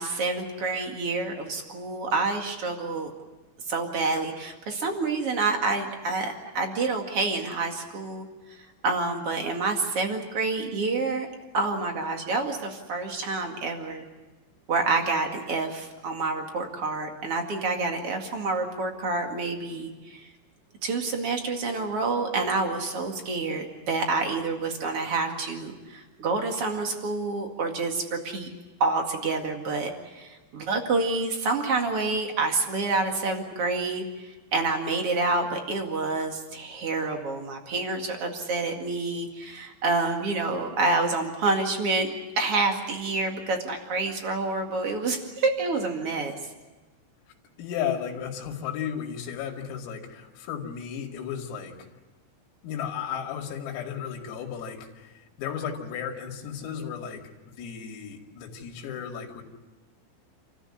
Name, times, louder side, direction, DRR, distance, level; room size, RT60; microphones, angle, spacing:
voice 1, 0.0-3.1 3.7-8.3 8.8-11.3 11.5-14.0 14.7-20.3 20.8-28.5 28.8-42.1 42.4-46.3, right 3 dB, 50° right, 3 dB, 1.8 m, -28 dB
voice 2, 47.6-51.8 52.6-59.4, left 8 dB, 90° left, 1 dB, 5.0 m, -34 dB
29.0 x 14.5 x 9.7 m, 1.2 s
omnidirectional pair, 5.8 m